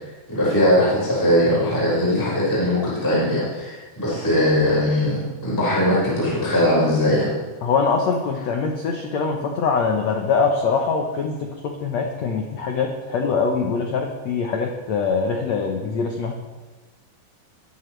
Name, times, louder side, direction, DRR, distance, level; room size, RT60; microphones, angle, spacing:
voice 1, 0.3-7.3, left 1 dB, 5° left, -9 dB, 5.0 m, -20 dB
voice 2, 7.6-16.3, left 5 dB, 85° left, 2 dB, 1.5 m, -23 dB
21.5 x 11.0 x 3.3 m, 1.3 s
omnidirectional pair, 4.8 m